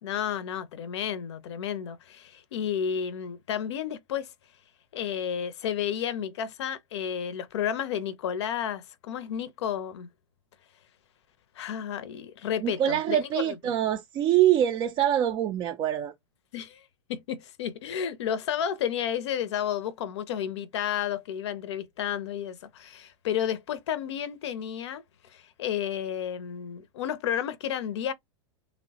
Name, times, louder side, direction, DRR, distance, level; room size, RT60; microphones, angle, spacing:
voice 1, 0.0-4.3 4.9-10.1 11.6-13.6 16.5-16.8 17.1-25.0 25.3-28.1, left 9 dB, 70° left, 0.6 m, -32 dB
voice 2, 12.6-16.1, right 11 dB, 30° right, 0.3 m, -24 dB
2.9 x 2.0 x 2.7 m
hypercardioid pair, 105°, 15 cm